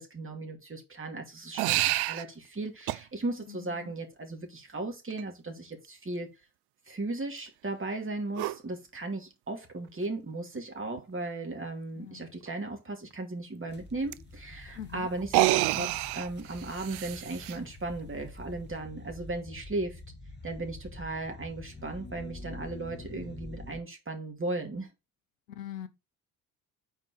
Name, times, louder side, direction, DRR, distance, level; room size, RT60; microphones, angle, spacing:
voice 1, 0.0-6.3 6.9-20.0 20.4-24.9, right 2 dB, 25° right, 2.5 m, -36 dB
sound 1, 1.6-2.2 2.9-3.0 5.1-5.2 8.3-8.6 10.0-10.1 10.5-10.6 11.0-11.1 14.1-14.2 15.2-17.6, right 17 dB, 55° right, 0.5 m, -28 dB
voice 2, 3.5-3.9 12.0-12.3 14.7-15.1 25.5-25.9, left 10 dB, 80° left, 0.9 m, -42 dB
sound 2, 13.7-23.8, left 2 dB, 20° left, 2.0 m, -46 dB
5.5 x 4.4 x 6.2 m
figure-of-eight pair, 40°, 47 cm